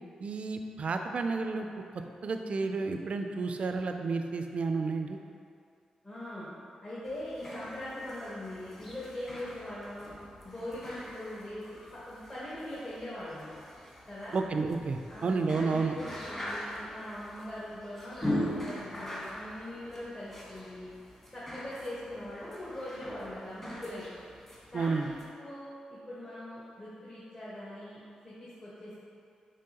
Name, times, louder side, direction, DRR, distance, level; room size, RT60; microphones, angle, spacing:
voice 1, 0.2-1.7 2.2-5.2 14.3-15.9 24.7-25.1, right 4 dB, 55° right, 5 dB, 0.3 m, -31 dB
voice 2, 6.0-6.5 6.8-10.1 10.4-13.6 14.1-14.4 15.1-20.9 21.3-24.2 24.7-28.0 28.2-29.0, left 1 dB, 35° left, -10 dB, 1.2 m, -41 dB
sound 1, 7.0-25.3, left 1 dB, 20° left, 1.3 m, -42 dB
5.3 x 3.0 x 2.8 m, 2.4 s
supercardioid pair, 50°, 2 cm